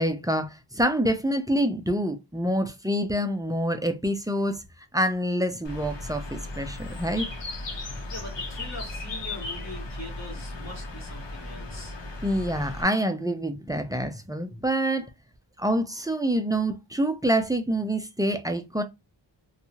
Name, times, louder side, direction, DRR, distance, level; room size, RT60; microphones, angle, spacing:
voice 1, 0.0-4.6 4.9-7.3 12.2-15.1 15.6-18.8, right 1 dB, 10° right, 0.4 m, -26 dB
Bird, 5.6-12.8, left 2 dB, 75° left, 0.9 m, -36 dB
voice 2, 8.1-12.0, left 2 dB, 40° left, 1.5 m, -42 dB
2.7 x 2.3 x 2.7 m
wide cardioid pair, 55°, 43 cm